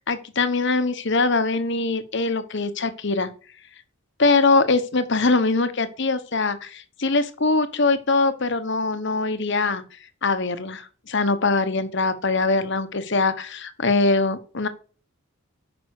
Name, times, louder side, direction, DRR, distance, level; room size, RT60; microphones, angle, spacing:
voice 1, 0.1-3.3 4.2-9.8 10.2-14.7, left 3 dB, 55° left, 11 dB, 1.2 m, -22 dB
9.6 x 5.9 x 6.6 m, 0.38 s
head